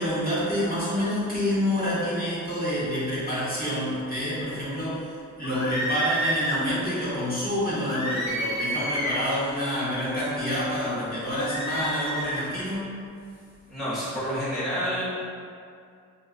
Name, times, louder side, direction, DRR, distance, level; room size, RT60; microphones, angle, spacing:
voice 1, 0.0-12.9, equal, 30° left, -10 dB, 1.1 m, -28 dB
sound 1, 5.4-6.6 7.9-9.3 11.2-12.5, right 1 dB, 60° left, 1.2 m, -29 dB
voice 2, 13.7-15.0, equal, ahead, -11 dB, 0.9 m, -29 dB
2.8 x 2.3 x 3.9 m, 2.3 s
cardioid pair, 85°, 31 cm